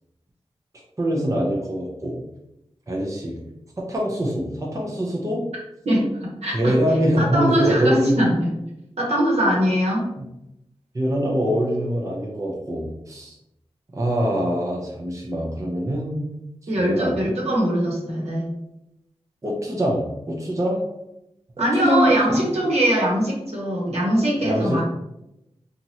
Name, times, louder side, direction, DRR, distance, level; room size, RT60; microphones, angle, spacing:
voice 1, 1.0-2.2 2.9-3.4 3.8-5.5 6.5-8.3 10.2-10.3 10.9-13.4 13.9-16.3 16.8-17.1 19.4-20.8 21.6-22.4 24.4-24.8, equal, 30° right, -2 dB, 0.6 m, -24 dB
voice 2, 5.8-6.7 7.2-8.5 9.0-10.0 16.7-18.5 21.6-24.8, equal, 70° right, -4 dB, 1.1 m, -22 dB
2.9 x 2.5 x 2.8 m, 0.87 s
cardioid pair, 50°, 11 cm